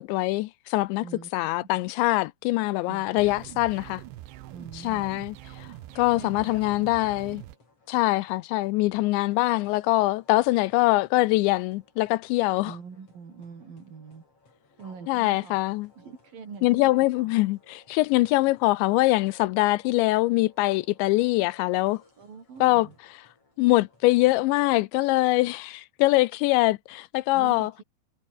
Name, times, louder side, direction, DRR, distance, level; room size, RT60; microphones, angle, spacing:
voice 1, 0.0-1.0 1.3-4.0 4.7-5.7 6.0-7.4 7.9-12.7 15.1-15.9 16.6-22.0 22.6-22.9 23.6-27.7, left 20 dB, 85° left, 3.0 m, -23 dB
voice 2, 2.9-3.2 4.5-5.1 6.1-6.5 12.6-14.2 14.8-15.6 16.0-17.3 22.2-23.0 27.3-27.8, right 5 dB, 55° right, 6.0 m, -43 dB
sound 1, 3.2-7.6, right 14 dB, 80° right, 3.5 m, -44 dB
sound 2, 5.7-24.7, left 3 dB, 30° left, 7.3 m, -60 dB
omnidirectional pair, 5.1 m